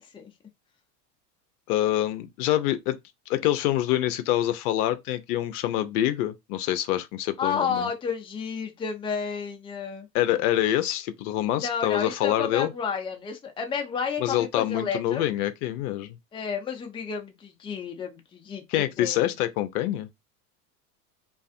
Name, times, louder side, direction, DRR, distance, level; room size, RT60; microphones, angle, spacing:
voice 1, 1.7-3.0 3.3-7.9 10.1-12.7 14.2-16.2 18.7-20.1, left 13 dB, 65° left, 0.6 m, -26 dB
voice 2, 7.4-10.1 11.6-15.3 16.3-19.2, left 6 dB, 10° left, 0.5 m, -31 dB
2.5 x 2.5 x 2.4 m
hypercardioid pair, 90°, 49 cm